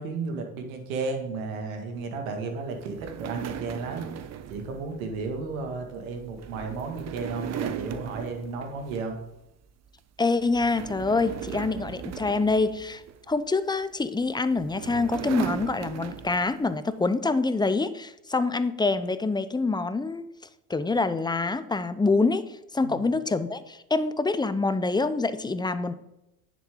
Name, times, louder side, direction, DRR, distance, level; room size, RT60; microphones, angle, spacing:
voice 1, 0.0-9.2 22.8-23.1, right 4 dB, 90° right, 4 dB, 2.0 m, -33 dB
sound 1, 2.8-9.3 9.7-10.0 10.4-13.4 14.2-16.7, right 9 dB, 40° right, 0.8 m, -38 dB
voice 2, 10.2-20.3 20.7-25.9, left 3 dB, 10° left, 13 dB, 0.6 m, -26 dB
10.0 x 7.4 x 3.8 m, 0.90 s
supercardioid pair, 90°, 40 cm